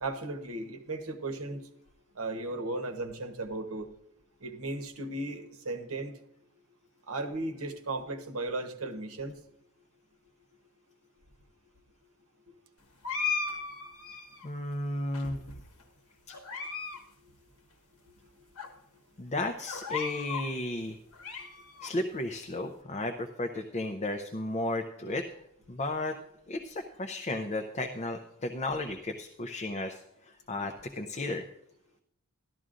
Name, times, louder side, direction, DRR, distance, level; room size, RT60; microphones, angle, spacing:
voice 1, 0.0-1.6 2.2-3.9 4.4-6.1 7.1-9.3, right 2 dB, 80° right, 6 dB, 1.0 m, -36 dB
sound 1, 13.0-14.5 15.1-15.8 16.3-17.0 17.3-17.4 18.1-18.2 18.6-18.7 19.7-20.5 20.9-21.9, left 4 dB, 80° left, 1.2 m, -36 dB
voice 2, 14.4-15.4 16.3-16.4 19.2-21.0 21.8-25.2 25.7-26.1 26.5-31.5, left 2 dB, 30° left, 4 dB, 0.5 m, -34 dB
13.5 x 12.5 x 2.5 m, 0.77 s
head